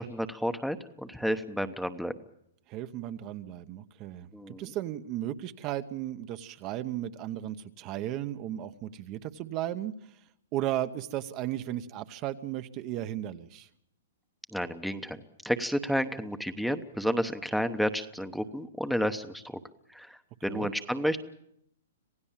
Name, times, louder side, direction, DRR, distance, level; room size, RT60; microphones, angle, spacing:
voice 1, 0.0-2.1 4.3-4.7 14.5-19.6 19.9-21.2, equal, ahead, 9 dB, 0.9 m, -31 dB
voice 2, 2.7-9.9 10.5-13.7 20.5-20.7, right 13 dB, 30° right, 9 dB, 0.9 m, -35 dB
27.0 x 16.5 x 7.3 m, 0.71 s
hypercardioid pair, 155°, 0 cm